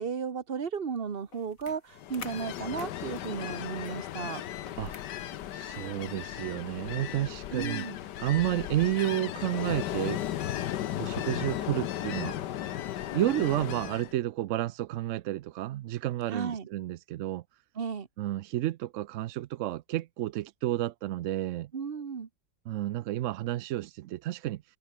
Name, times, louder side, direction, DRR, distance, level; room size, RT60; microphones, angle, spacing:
voice 1, 0.0-4.4 7.5-8.0 16.3-16.7 17.7-18.1 21.7-22.3, right 6 dB, 35° right, 1.4 m, -34 dB
sound 1, 1.3-6.1, left 5 dB, 50° left, 2.4 m, -50 dB
Ocean, 2.0-14.1, left 12 dB, 80° left, 1.5 m, -36 dB
voice 2, 5.5-7.8 8.2-10.2 10.9-12.4 13.1-17.4 18.2-21.7 22.7-24.6, right 14 dB, 80° right, 0.7 m, -31 dB
omnidirectional pair, 1.8 m